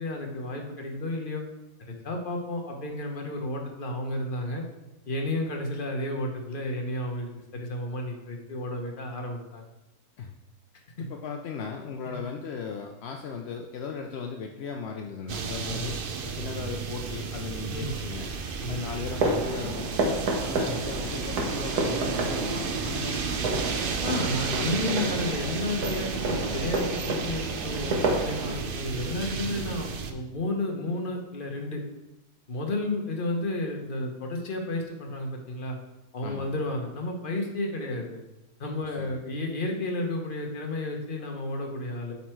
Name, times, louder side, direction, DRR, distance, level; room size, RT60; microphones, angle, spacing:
voice 1, 0.0-1.4 1.9-4.6 5.1-9.6 11.0-11.1 12.0-12.2 15.7-16.0 17.7-17.9 18.6-18.8 20.6-20.8 24.0-31.8 32.5-35.8 36.1-38.2 38.6-42.1, left 2 dB, 40° left, 2 dB, 1.2 m, -32 dB
voice 2, 11.1-18.3 18.7-24.0 36.2-36.5 38.8-39.2, left 5 dB, 65° left, 3 dB, 0.7 m, -37 dB
sound 1, 15.3-30.1, right 5 dB, 55° right, 0.6 m, -33 dB
sound 2, 19.1-28.6, right 2 dB, 90° right, 1.6 m, -30 dB
8.1 x 4.2 x 4.6 m, 0.96 s
omnidirectional pair, 1.6 m